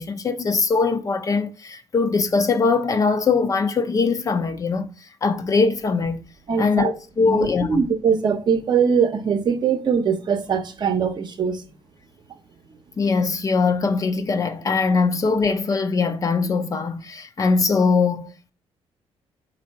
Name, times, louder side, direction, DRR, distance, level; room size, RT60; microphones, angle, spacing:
voice 1, 0.0-4.9 5.2-6.2 6.6-7.8 13.0-18.5, left 4 dB, 35° left, 0.5 m, -21 dB
voice 2, 6.5-6.9 7.2-7.4 7.7-11.6, right 6 dB, 45° right, 0.7 m, -21 dB
4.3 x 2.7 x 4.0 m
cardioid pair, 115°, 11 cm